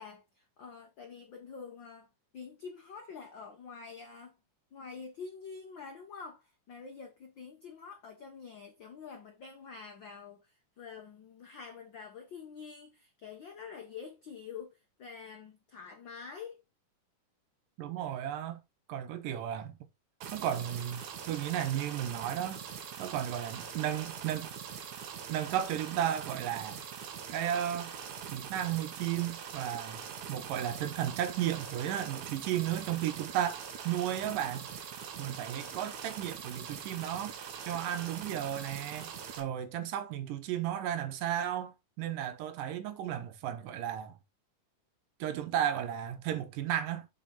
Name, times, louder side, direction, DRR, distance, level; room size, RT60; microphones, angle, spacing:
voice 1, 0.0-2.1 2.3-4.4 4.7-16.6, left 5 dB, 80° left, 1.0 m, -47 dB
voice 2, 17.8-18.6 18.9-19.8 20.3-22.6 23.0-24.5 25.3-26.8 27.3-27.9 28.3-30.0 30.3-34.7 35.2-37.3 37.6-44.2 45.2-47.1, right 11 dB, 85° right, 2.6 m, -34 dB
sound 1, 20.2-39.4, right 8 dB, 65° right, 2.4 m, -43 dB
7.4 x 4.7 x 4.1 m
omnidirectional pair, 3.7 m